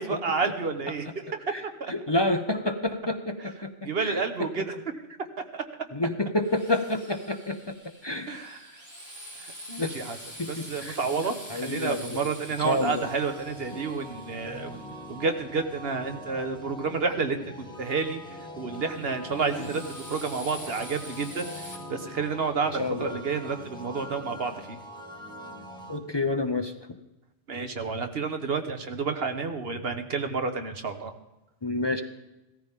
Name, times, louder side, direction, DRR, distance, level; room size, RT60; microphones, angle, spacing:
voice 1, 0.0-1.9 3.8-4.8 5.5-5.6 8.3-8.7 9.4-10.2 10.5-14.8 15.1-21.5 21.9-24.8 27.5-31.1, right 4 dB, 70° right, 7 dB, 1.4 m, -30 dB
voice 2, 1.9-3.7 4.0-4.5 5.9-7.7 8.0-8.4 9.8-9.9 10.4-11.0 11.5-12.3 12.6-13.1 19.6-19.7 22.8-23.1 25.9-26.7 31.6-32.0, left 2 dB, 25° left, 6 dB, 0.7 m, -29 dB
Drill, 6.4-15.4 18.8-21.7, equal, 15° right, 3.5 m, -45 dB
sound 1, 12.6-26.0, equal, 5° left, 1.5 m, -43 dB
17.0 x 14.0 x 3.7 m, 1.0 s
omnidirectional pair, 1.1 m